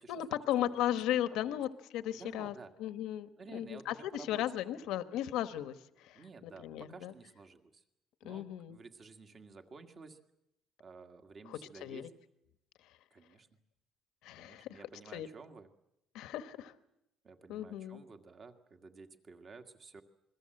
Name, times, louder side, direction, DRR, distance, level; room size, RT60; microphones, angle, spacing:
voice 1, 0.1-2.5 2.8-7.1 8.2-8.8 11.5-12.1 14.2-14.8 15.1-15.3 16.1-16.7 17.5-18.0, left 12 dB, 85° left, 11 dB, 1.3 m, -36 dB
voice 2, 2.1-2.7 3.4-4.9 6.1-7.8 8.2-10.2 10.8-12.1 13.1-13.5 14.4-15.7 17.2-20.0, right 4 dB, 35° right, 6 dB, 1.8 m, -53 dB
27.5 x 22.0 x 7.8 m, 0.82 s
cardioid pair, 145°, 0 cm